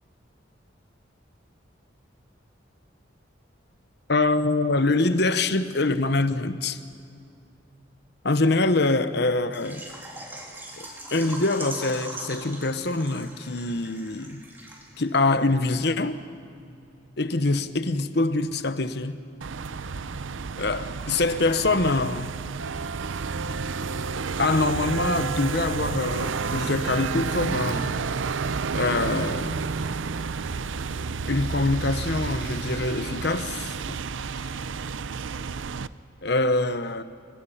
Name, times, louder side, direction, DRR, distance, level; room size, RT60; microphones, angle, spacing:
voice 1, 4.1-6.8 8.2-9.8 10.8-14.4 15.0-16.2 17.2-19.2 20.6-22.3 24.4-28.0 28.7-29.6 31.3-34.0 34.4-34.5 36.2-37.0, left 2 dB, 60° left, 1.1 m, -24 dB
Water / Liquid, 9.5-15.1 15.4-15.5 15.9-16.0, right 1 dB, 10° right, 3.7 m, -40 dB
sound 1, 19.4-35.9, right 5 dB, 85° right, 0.6 m, -30 dB
29.0 x 24.0 x 5.7 m
head